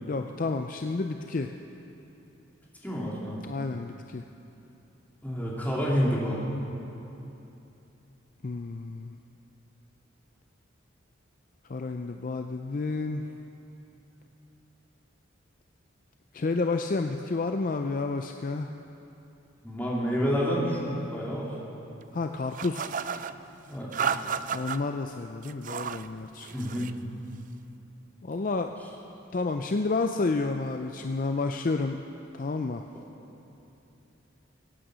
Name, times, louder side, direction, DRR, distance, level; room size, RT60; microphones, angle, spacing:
voice 1, 0.1-1.5 3.4-4.3 8.4-9.1 11.7-13.3 16.3-18.7 22.1-22.9 24.5-26.5 28.2-28.7 29.3-32.0 32.3-32.8, left 3 dB, 40° left, 5 dB, 0.4 m, -30 dB
voice 2, 2.8-3.4 5.2-6.4 19.6-21.5 23.7-24.2 26.5-26.9, equal, 10° left, -6 dB, 2.8 m, -29 dB
sound 1, 22.5-23.3 23.9-24.8 25.4-26.1 26.4-27.0, right 6 dB, 40° right, 0.4 m, -32 dB
22.5 x 9.1 x 6.2 m, 2.9 s
head